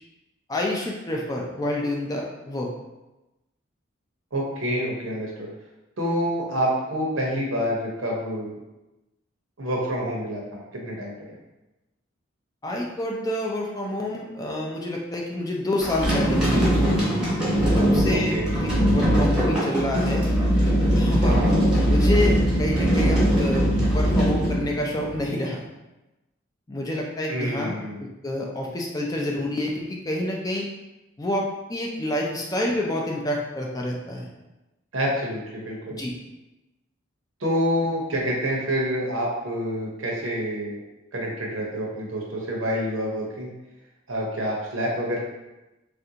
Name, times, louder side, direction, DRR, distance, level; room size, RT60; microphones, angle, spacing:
voice 1, 0.5-2.7 12.6-16.8 17.8-20.3 20.9-21.4 21.9-25.6 26.7-27.7 28.2-30.7 31.2-31.4 31.7-34.3 35.9-36.1, left 1 dB, 20° left, -1 dB, 0.3 m, -28 dB
voice 2, 4.3-5.5 6.0-8.6 9.6-11.4 18.1-18.5 21.2-21.6 27.3-28.1 34.9-36.0 37.4-40.8 41.1-43.5 44.1-45.2, equal, 80° right, -2 dB, 0.8 m, -27 dB
sound 1, 15.8-25.2, equal, 5° right, 0.8 m, -21 dB
3.3 x 2.5 x 2.8 m, 1.0 s
head